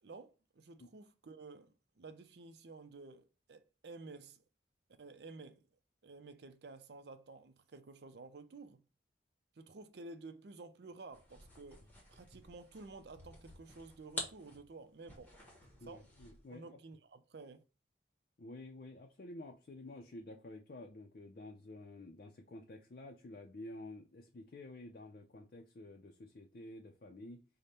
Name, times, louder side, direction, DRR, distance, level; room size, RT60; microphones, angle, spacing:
voice 1, 0.0-4.4 5.0-5.6 6.0-8.8 9.6-15.3 15.9-16.1 16.5-17.6, right 3 dB, 65° right, 0.5 m, -52 dB
sound 1, 11.1-16.5, left 2 dB, 10° left, 1.0 m, -49 dB
voice 2, 15.8-16.8 18.4-27.4, left 1 dB, 50° left, 0.4 m, -51 dB
5.0 x 2.1 x 4.2 m
head